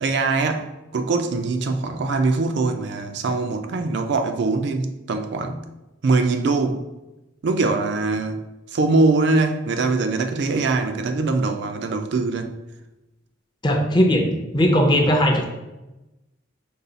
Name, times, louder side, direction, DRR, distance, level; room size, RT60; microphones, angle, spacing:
voice 1, 0.0-5.6 6.0-6.8 7.4-12.5, right 3 dB, 60° right, 0.4 m, -22 dB
voice 2, 13.6-14.3 14.5-15.5, equal, 25° left, 0.5 m, -18 dB
5.3 x 2.3 x 3.9 m
head